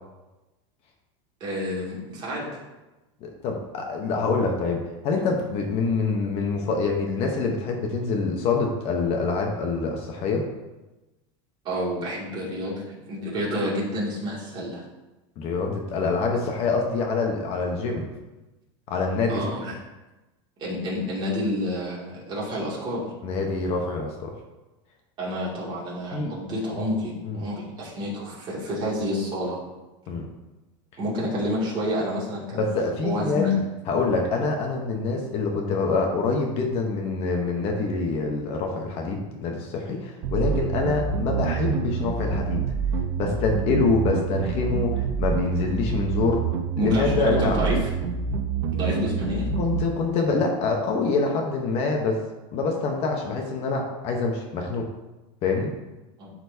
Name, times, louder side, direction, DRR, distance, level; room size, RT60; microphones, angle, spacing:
voice 1, 1.4-2.5 11.6-14.8 19.3-19.7 20.6-23.1 25.2-29.6 31.0-32.7 33.0-33.6 46.8-47.8 48.7-49.5 56.2-56.3, left 1 dB, 30° right, -5 dB, 2.5 m, -29 dB
voice 2, 3.2-10.4 15.4-18.1 18.9-19.4 23.2-24.3 26.1-26.3 27.2-27.4 30.1-30.3 32.6-33.4 33.9-42.6 43.2-46.4 46.8-47.7 49.6-52.2 52.5-54.9 55.4-55.7, left 4 dB, 40° left, 1 dB, 1.0 m, -25 dB
sound 1, 40.2-49.8, right 6 dB, 55° right, 0.7 m, -27 dB
12.0 x 4.4 x 2.8 m, 1.1 s
supercardioid pair, 155°, 16 cm